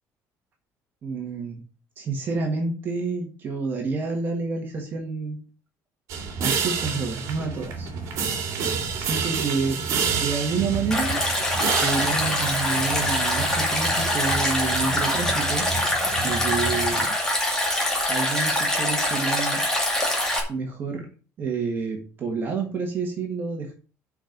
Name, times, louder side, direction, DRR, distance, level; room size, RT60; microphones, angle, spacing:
voice 1, 1.0-1.6 2.0-5.4 6.4-7.9 9.0-11.2 11.8-15.7 15.9-17.2 18.1-19.6 20.5-21.1 21.4-23.7, right 4 dB, 35° right, 1 dB, 1.7 m, -29 dB
sound 1, 6.1-17.1, right 5 dB, 50° right, 2.5 m, -29 dB
Stream, 10.9-20.4, left 1 dB, 10° left, 2.2 m, -24 dB
6.9 x 5.3 x 7.2 m, 0.38 s
cardioid pair, 175°, 6 cm